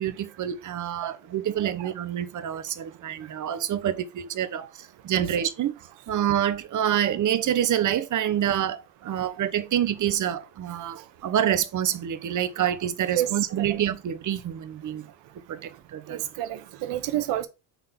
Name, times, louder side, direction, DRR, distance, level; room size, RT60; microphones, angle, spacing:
voice 1, 0.0-5.7 6.1-15.0 15.5-16.2, right 10 dB, 45° right, 1.1 m, -27 dB
voice 2, 16.1-17.5, right 13 dB, 80° right, 1.3 m, -29 dB
5.6 x 3.8 x 5.9 m
cardioid pair, 120°, 42 cm